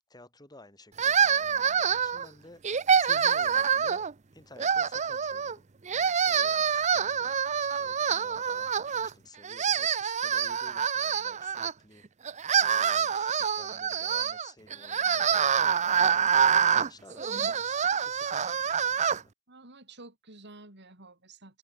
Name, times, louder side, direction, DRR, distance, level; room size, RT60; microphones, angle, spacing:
voice 1, 0.0-2.6 3.0-5.7 6.0-7.4 7.8-12.0 12.5-19.3, left 2 dB, 20° left, 7.5 m, -53 dB
sound 1, 1.0-2.3 2.6-4.1 4.6-5.5 5.9-9.1 9.4-11.7 12.2-19.2, right 7 dB, 30° right, 0.6 m, -26 dB
voice 2, 19.5-21.6, right 2 dB, 50° right, 5.5 m, -50 dB
head